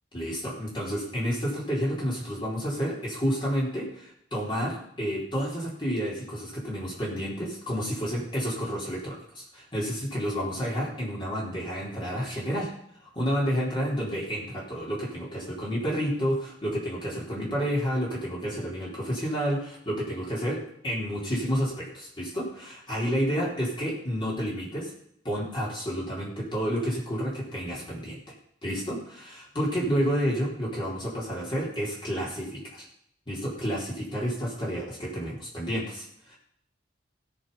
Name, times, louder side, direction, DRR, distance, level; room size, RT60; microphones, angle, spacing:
voice 1, 0.1-12.7 13.1-24.9 25.2-28.3 28.6-32.9 33.3-36.4, equal, 25° left, -5 dB, 3.9 m, -30 dB
17.0 x 6.3 x 5.6 m, 0.70 s
head